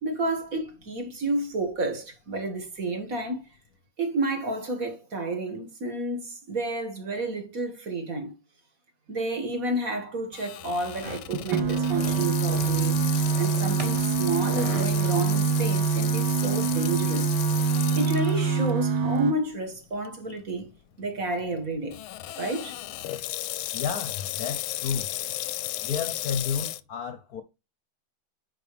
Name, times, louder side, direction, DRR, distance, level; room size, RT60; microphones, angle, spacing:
voice 1, 0.0-3.4 4.0-8.3 9.1-17.4 17.7-20.7 21.0-22.0 22.4-22.8, right 2 dB, 45° right, 2.1 m, -30 dB
Water tap faucet / Sink (filling or washing), 10.3-18.7 19.2-19.3 20.1-20.3 21.9-26.8, left 14 dB, 85° left, 1.4 m, -35 dB
sound 1, 11.0-16.0, right 1 dB, 20° right, 1.3 m, -41 dB
sound 2, 11.3-19.3, right 5 dB, 75° right, 1.8 m, -25 dB
voice 2, 23.7-25.1 25.8-27.4, left 6 dB, 60° left, 1.0 m, -31 dB
9.0 x 5.0 x 3.1 m
omnidirectional pair, 2.2 m